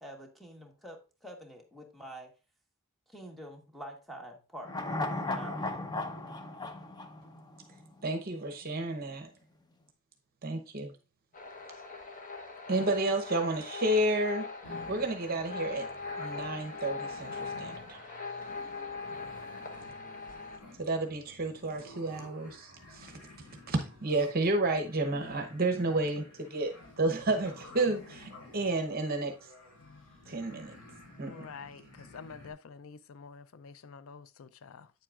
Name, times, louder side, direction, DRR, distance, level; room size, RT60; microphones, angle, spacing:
voice 1, 0.0-2.3 3.1-4.9 5.3-5.9, right 1 dB, ahead, 1.2 m, -47 dB
sound 1, 4.6-8.0 8.3-8.4, left 2 dB, 20° left, 0.7 m, -36 dB
voice 2, 8.0-9.3 10.4-10.9 12.7-14.5 14.9-15.9 16.2-18.0 20.8-23.1 23.7-29.3 30.3-30.7 31.2-31.5, right 2 dB, 40° right, 0.9 m, -31 dB
sound 2, 11.3-20.6, left 4 dB, 35° left, 1.1 m, -41 dB
sound 3, 14.6-32.5, left 2 dB, 85° left, 3.9 m, -52 dB
voice 3, 31.3-34.9, left 5 dB, 65° left, 0.4 m, -48 dB
9.1 x 7.5 x 2.4 m
head